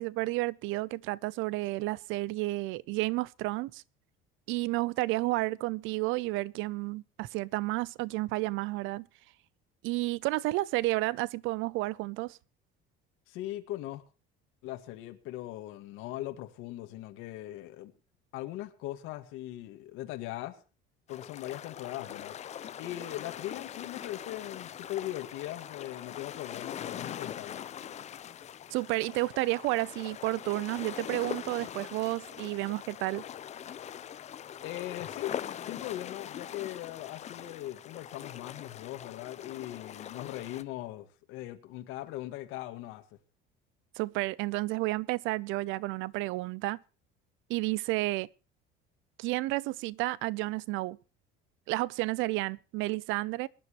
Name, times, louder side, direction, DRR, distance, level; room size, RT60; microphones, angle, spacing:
voice 1, 0.0-3.8 4.5-9.0 9.8-12.4 28.7-33.2 44.0-46.8 47.5-48.3 49.2-51.0 51.7-53.5, right 20 dB, 70° right, 0.6 m, -31 dB
voice 2, 13.3-14.0 14.6-17.9 18.3-20.6 21.1-22.4 22.8-27.7 34.6-35.3 35.6-43.0, left 15 dB, 75° left, 1.9 m, -40 dB
sound 1, 21.1-40.6, left 9 dB, 30° left, 0.7 m, -42 dB
22.0 x 11.0 x 3.1 m
cardioid pair, 150°, 21 cm